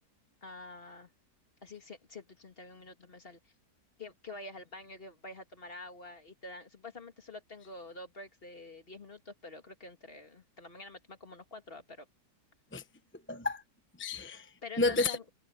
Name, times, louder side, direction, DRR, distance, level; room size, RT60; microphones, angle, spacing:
voice 1, 0.4-1.1 1.6-3.4 4.0-12.1 14.6-15.2, left 3 dB, 35° left, 2.3 m, -47 dB
voice 2, 13.3-13.6 14.0-15.3, left 3 dB, 10° left, 0.8 m, -31 dB
omnidirectional pair, 1.7 m